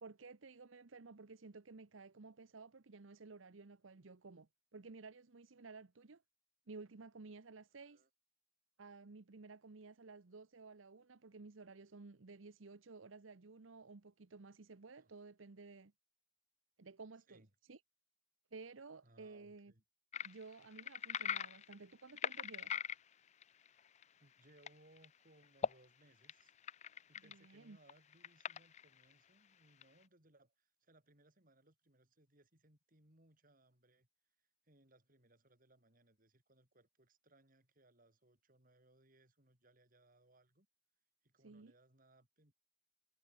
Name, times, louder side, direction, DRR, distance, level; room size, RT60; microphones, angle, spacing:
voice 1, 0.0-6.2 6.7-8.0 8.8-15.9 16.8-17.4 17.7-17.8 18.5-19.7 20.2-22.8 27.2-27.8 41.4-41.7, right 3 dB, 85° right, 0.9 m, -54 dB
voice 2, 7.7-8.1 15.0-15.1 17.3-17.5 19.0-19.8 23.7-23.8 24.2-26.5 27.1-34.1 34.4-40.7 41.2-42.5, right 1 dB, 45° right, 5.8 m, -69 dB
sound 1, 20.1-24.0 24.6-24.7 25.0-25.1 25.4-25.7 26.2-27.5 27.9-29.1 29.8-29.9, left 7 dB, 35° left, 0.4 m, -41 dB
head